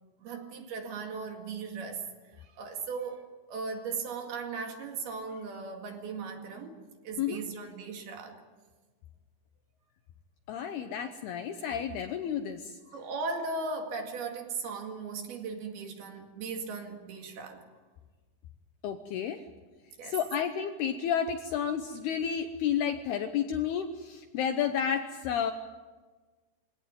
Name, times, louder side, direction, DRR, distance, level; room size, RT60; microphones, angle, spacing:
voice 1, 0.2-8.4 12.9-17.7 20.0-20.2, right 4 dB, 60° right, 3 dB, 3.7 m, -38 dB
voice 2, 10.5-12.8 18.8-19.4 20.0-25.5, left 8 dB, 75° left, 7 dB, 2.4 m, -31 dB
24.0 x 17.5 x 9.3 m, 1.4 s
omnidirectional pair, 5.6 m